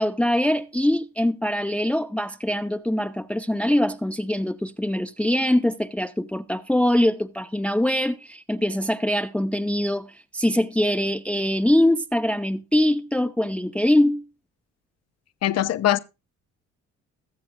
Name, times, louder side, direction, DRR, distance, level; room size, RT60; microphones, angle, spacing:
voice 1, 0.0-14.2, left 1 dB, 5° left, 0.5 m, -23 dB
voice 2, 15.4-16.0, left 12 dB, 55° left, 0.7 m, -21 dB
21.0 x 7.6 x 2.2 m
cardioid pair, 90°, 30 cm